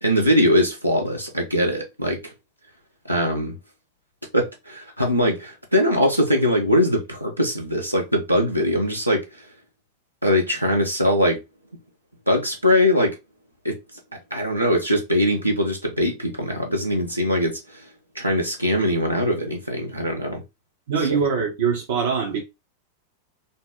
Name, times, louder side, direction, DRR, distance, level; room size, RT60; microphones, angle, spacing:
voice 1, 0.0-2.3 3.0-3.6 4.3-9.2 10.2-11.4 12.3-13.2 13.6-13.8 14.3-17.9 18.1-20.4 21.1-21.2, equal, 90° right, 1.1 m, -21 dB
voice 2, 20.9-22.4, right 6 dB, 60° right, 0.8 m, -23 dB
4.1 x 2.0 x 3.6 m
figure-of-eight pair, 90°, 0 cm